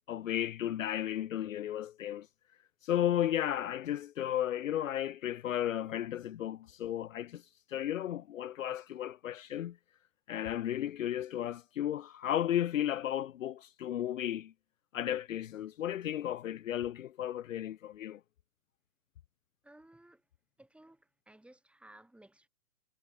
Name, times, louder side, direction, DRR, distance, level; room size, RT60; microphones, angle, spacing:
voice 1, 0.1-2.3 2.8-7.4 7.7-9.8 10.3-14.5 14.9-18.2, left 11 dB, 55° left, 1.0 m, -34 dB
voice 2, 19.6-20.2 20.6-21.0 21.3-22.5, right 1 dB, ahead, 3.5 m, -57 dB
figure-of-eight pair, 115°, 46 cm